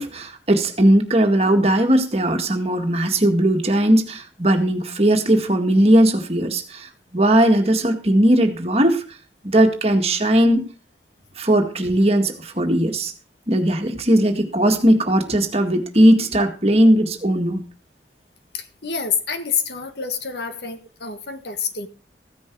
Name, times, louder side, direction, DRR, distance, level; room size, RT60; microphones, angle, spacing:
voice 1, 0.0-9.0 9.4-10.7 11.4-13.1 13.5-17.6, right 1 dB, 35° right, 5 dB, 1.9 m, -18 dB
voice 2, 18.5-21.9, left 6 dB, 70° left, 8 dB, 1.7 m, -27 dB
15.0 x 10.0 x 4.7 m, 0.38 s
head